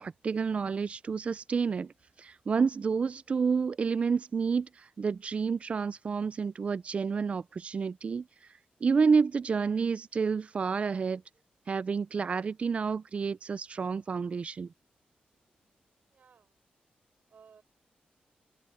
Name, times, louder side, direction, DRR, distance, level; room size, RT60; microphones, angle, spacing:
voice 1, 0.0-1.9 2.2-4.7 5.0-8.2 8.8-11.2 11.7-14.7, right 5 dB, 40° right, 0.4 m, -29 dB
voice 2, 15.9-16.6 17.3-17.6, right 6 dB, 60° right, 6.5 m, -59 dB
wide cardioid pair, 140°, 3 cm